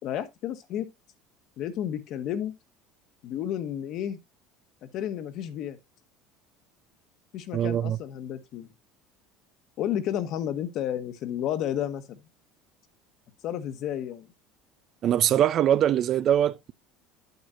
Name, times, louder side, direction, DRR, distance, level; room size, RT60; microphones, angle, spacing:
voice 1, 0.0-0.9 1.6-2.5 3.2-4.2 4.8-5.8 7.3-8.7 9.8-12.2 13.4-14.3, left 10 dB, 60° left, 1.4 m, -31 dB
voice 2, 7.5-8.0 15.0-16.7, right 10 dB, 50° right, 0.5 m, -22 dB
8.7 x 8.1 x 2.7 m
supercardioid pair, 95°, 0 cm